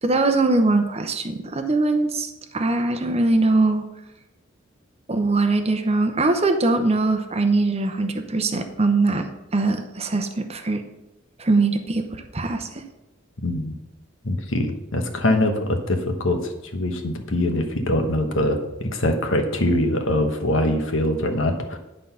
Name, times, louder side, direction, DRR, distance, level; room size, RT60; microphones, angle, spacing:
voice 1, 0.0-3.8 5.1-9.2 9.5-10.8 11.4-12.8, right 3 dB, 30° right, 6 dB, 0.8 m, -21 dB
voice 2, 13.4-13.7 14.2-21.8, left 1 dB, 75° left, 5 dB, 1.2 m, -23 dB
11.0 x 3.9 x 5.6 m, 0.94 s
head